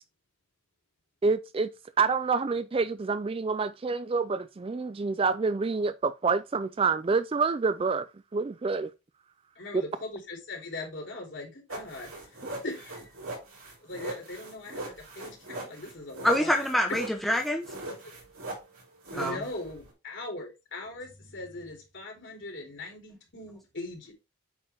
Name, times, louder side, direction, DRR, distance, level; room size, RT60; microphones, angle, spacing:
voice 1, 1.2-1.7 2.0-8.1 8.3-8.9, right 4 dB, 25° right, 0.3 m, -27 dB
voice 2, 9.5-13.1 13.8-16.6 18.0-18.1 19.1-24.1, left 2 dB, 55° left, 3.2 m, -40 dB
sound 1, 11.7-19.9, right 2 dB, 80° right, 4.3 m, -40 dB
voice 3, 16.2-17.7 19.1-19.4, left 1 dB, ahead, 0.9 m, -26 dB
8.3 x 4.8 x 3.4 m
head